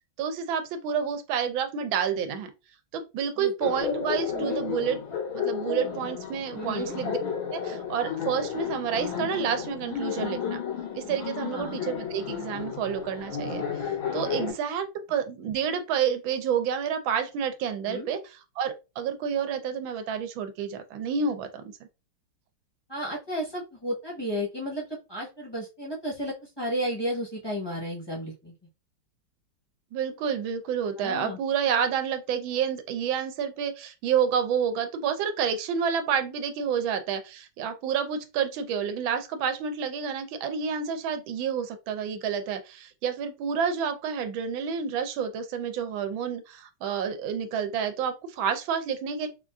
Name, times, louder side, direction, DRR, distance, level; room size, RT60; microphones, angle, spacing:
voice 1, 0.2-2.5 2.9-5.0 5.3-7.2 7.5-10.6 10.9-21.6 29.9-49.3, right 7 dB, 85° right, 1.4 m, -29 dB
Laughter, 3.6-14.5, left 7 dB, 90° left, 2.0 m, -32 dB
voice 2, 6.5-7.0 11.5-11.8 17.8-18.1 22.9-28.5 31.0-31.4, equal, 20° left, 0.6 m, -33 dB
4.2 x 2.4 x 2.3 m
omnidirectional pair, 2.1 m